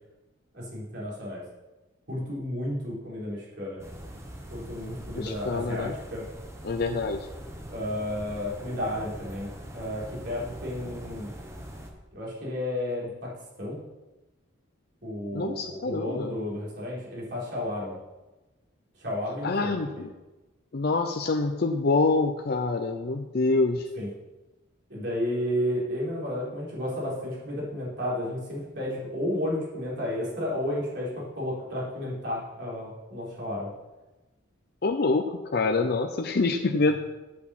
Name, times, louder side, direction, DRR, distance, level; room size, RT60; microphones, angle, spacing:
voice 1, 0.5-1.4 2.1-3.8 4.5-6.2 7.7-11.3 12.1-13.3 13.6-13.8 15.0-18.0 19.0-20.0 24.0-24.1 24.9-33.7 35.8-35.9, left 1 dB, 60° right, -6 dB, 4.1 m, -32 dB
sound 1, 3.8-11.9, equal, 15° right, 1.1 m, -42 dB
voice 2, 5.1-6.0 6.6-7.3 15.3-16.3 19.4-20.1 20.7-23.9 34.8-36.9, left 3 dB, 50° left, 5 dB, 0.6 m, -26 dB
8.6 x 6.3 x 7.3 m, 1.1 s
head